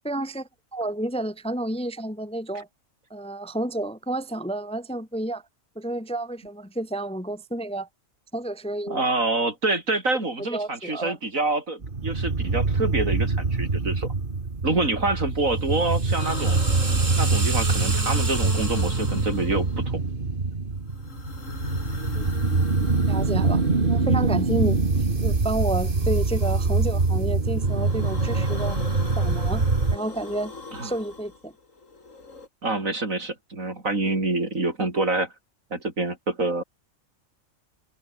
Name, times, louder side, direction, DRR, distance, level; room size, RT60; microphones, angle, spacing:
voice 1, 0.0-2.7 3.1-5.4 5.8-7.9 8.3-9.0 10.5-11.2 22.1-22.2 23.1-24.8 25.2-28.8 29.2-29.6 29.9-30.5 30.8-31.5, right 1 dB, 5° left, 0.9 m, -30 dB
voice 2, 8.9-14.1 14.6-16.6 17.2-20.0 30.7-30.9 32.6-35.3 35.7-36.6, right 2 dB, 90° right, 5.2 m, -26 dB
sound 1, 11.8-30.0, right 3 dB, 40° right, 2.2 m, -24 dB
sound 2, 16.2-20.1 20.9-24.6 26.0-27.1 27.5-32.5, left 3 dB, 75° left, 3.5 m, -39 dB
omnidirectional pair, 1.4 m